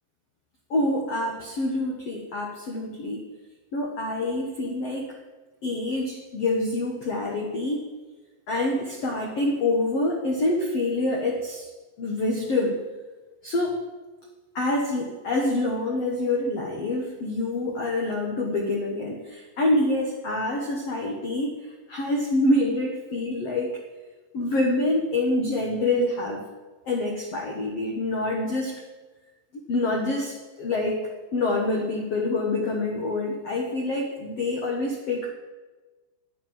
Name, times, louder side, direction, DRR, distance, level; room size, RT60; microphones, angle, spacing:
voice 1, 0.7-3.3 3.7-5.2 5.6-7.9 8.5-11.7 12.0-12.8 13.4-13.8 14.5-23.8 24.3-26.4 26.8-28.8 29.5-35.3, left 2 dB, 75° left, 0 dB, 1.4 m, -26 dB
12.0 x 10.0 x 7.5 m, 1.3 s
omnidirectional pair, 5.1 m